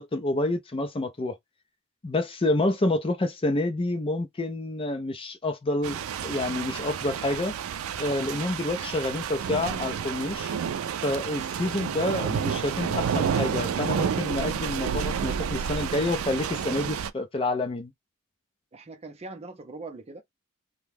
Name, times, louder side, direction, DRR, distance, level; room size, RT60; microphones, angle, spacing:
voice 1, 0.0-1.4 2.0-7.5 8.0-10.5 11.0-17.9, left 2 dB, 25° left, 0.5 m, -28 dB
sound 1, 5.8-17.1, right 7 dB, 80° right, 0.4 m, -30 dB
voice 2, 18.7-20.2, right 3 dB, 30° right, 0.6 m, -42 dB
2.8 x 2.2 x 3.4 m
head